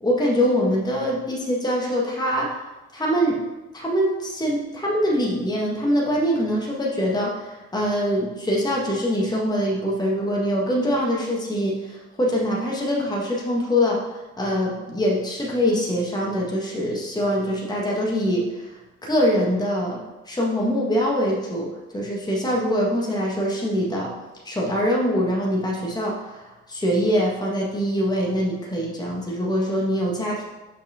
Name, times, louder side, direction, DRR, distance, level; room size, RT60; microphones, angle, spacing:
voice 1, 0.0-2.5 2.9-3.4 3.7-11.8 12.2-14.0 14.4-18.6 19.0-21.7 21.9-24.1 24.4-30.4, equal, 15° left, -3 dB, 1.7 m, -23 dB
5.8 x 5.1 x 4.3 m, 1.1 s
cardioid pair, 90°, 30 cm